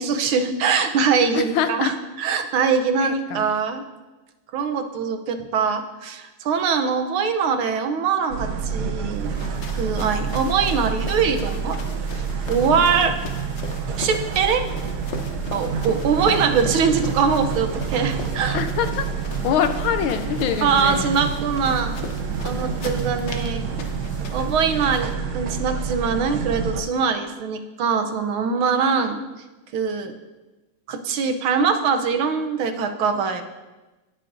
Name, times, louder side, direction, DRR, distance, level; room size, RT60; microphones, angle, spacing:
voice 1, 0.0-3.8 4.5-9.3 9.7-11.8 12.1-13.1 14.0-14.6 15.5-18.6 20.6-21.9 22.4-23.6 24.3-29.2 29.7-30.1 30.9-33.4, right 5 dB, 80° right, 6 dB, 1.7 m, -22 dB
voice 2, 1.3-1.9 3.0-3.4 18.5-19.1 19.4-21.1, left 8 dB, 80° left, 9 dB, 1.5 m, -24 dB
sound 1, 8.3-26.8, right 6 dB, 60° right, 1.2 m, -28 dB
sound 2, 9.1-25.1, left 4 dB, 60° left, 0.7 m, -39 dB
18.5 x 7.6 x 2.7 m, 1.1 s
omnidirectional pair, 2.3 m